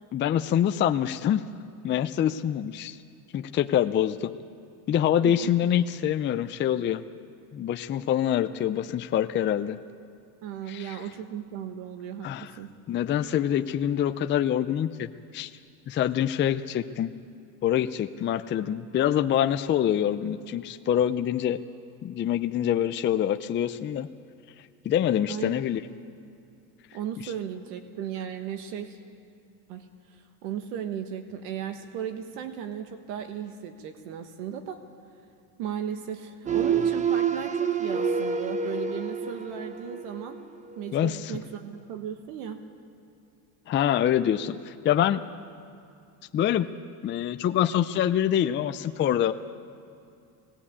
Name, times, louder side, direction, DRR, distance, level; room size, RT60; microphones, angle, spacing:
voice 1, 0.1-1.4 1.8-3.0 3.3-4.3 4.9-7.0 7.5-9.8 10.7-11.0 12.2-12.5 12.9-15.5 15.9-17.1 17.6-21.6 22.0-24.1 24.6-25.8 40.9-41.4 43.7-45.2 46.3-46.7 47.0-49.3, left 10 dB, 25° left, 9 dB, 0.5 m, -25 dB
voice 2, 5.2-5.5 10.4-12.7 25.3-25.5 26.9-29.0 29.7-34.8 35.6-40.4 40.8-42.6, right 9 dB, 80° right, 7 dB, 1.5 m, -36 dB
sound 1, 36.5-40.4 40.8-41.1, right 6 dB, 15° right, 0.8 m, -28 dB
20.0 x 16.5 x 8.6 m, 2.6 s
cardioid pair, 130°, 44 cm